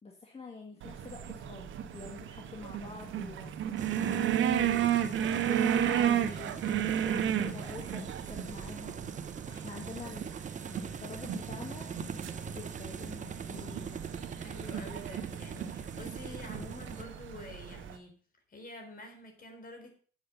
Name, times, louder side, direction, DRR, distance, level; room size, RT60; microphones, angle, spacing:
voice 1, 0.0-3.6 4.1-9.1 9.4-10.3 10.7-14.1, left 4 dB, 30° left, 1 dB, 2.0 m, -46 dB
sound 1, 0.8-18.0, right 9 dB, 80° right, 1.2 m, -33 dB
sound 2, 3.8-17.0, right 6 dB, 40° right, 0.9 m, -42 dB
voice 2, 7.0-7.4 14.3-18.2 18.5-19.9, left 2 dB, 45° left, 4 dB, 4.1 m, -48 dB
8.1 x 7.7 x 6.8 m, 0.42 s
cardioid pair, 90°, 20 cm